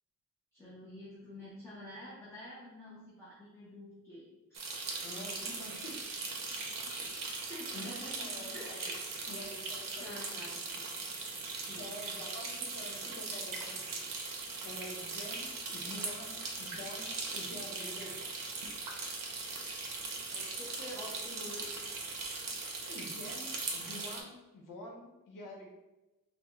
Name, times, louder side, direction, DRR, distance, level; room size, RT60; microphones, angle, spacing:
voice 1, 0.5-4.6 5.4-5.8 6.6-6.9 7.3-9.1 10.0-10.9 11.7-11.9 20.3-21.7, left 1 dB, 10° left, -8 dB, 0.6 m, -49 dB
sound 1, 4.5-24.2, right 3 dB, 85° right, 0.6 m, -40 dB
voice 2, 5.0-6.2 7.0-7.1 7.7-8.9 9.2-10.2 11.8-13.8 14.6-18.1 22.9-25.7, left 1 dB, 85° left, 0 dB, 0.8 m, -47 dB
3.5 x 2.0 x 3.1 m, 1.0 s
wide cardioid pair, 170°, 32 cm